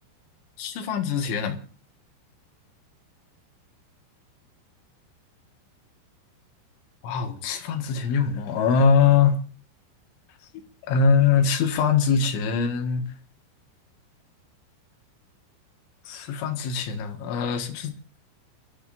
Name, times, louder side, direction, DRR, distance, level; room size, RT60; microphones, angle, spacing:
voice 1, 0.6-1.6 7.0-9.4 10.9-13.1 16.1-17.9, left 6 dB, 75° left, 3.9 m, -22 dB
30.0 x 13.5 x 2.6 m
omnidirectional pair, 5.5 m